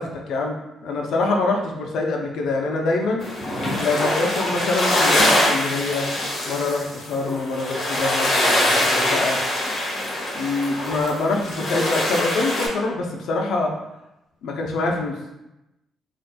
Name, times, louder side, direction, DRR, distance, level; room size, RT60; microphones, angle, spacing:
voice 1, 0.0-3.2 3.8-6.1 6.5-9.4 10.3-13.7 14.4-15.4, left 3 dB, 75° left, 1 dB, 0.5 m, -25 dB
sound 1, 3.2-12.7, left 1 dB, 55° left, 1.1 m, -23 dB
4.0 x 2.5 x 2.2 m, 0.93 s
cardioid pair, 90°, 0 cm